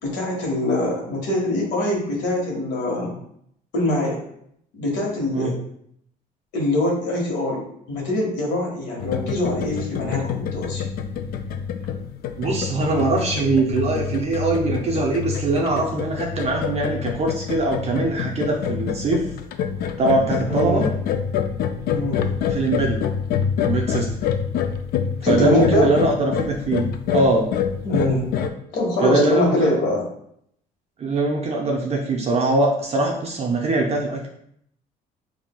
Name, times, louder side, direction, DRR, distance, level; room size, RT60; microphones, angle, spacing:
voice 1, 0.0-3.1 3.7-4.2 4.7-5.6 6.5-10.8 20.5-20.9 21.9-22.2 25.2-25.9 27.8-28.2 28.7-30.1, left 1 dB, 85° left, -1 dB, 1.4 m, -23 dB
sound 1, 9.0-28.5, left 7 dB, 65° left, 0.4 m, -26 dB
voice 2, 12.4-19.3 20.0-20.9 22.5-23.0 23.7-24.1 25.2-27.5 29.0-29.6 31.0-34.3, right 2 dB, 40° right, -1 dB, 0.6 m, -22 dB
5.7 x 2.6 x 2.2 m, 0.70 s
cardioid pair, 110°, 17 cm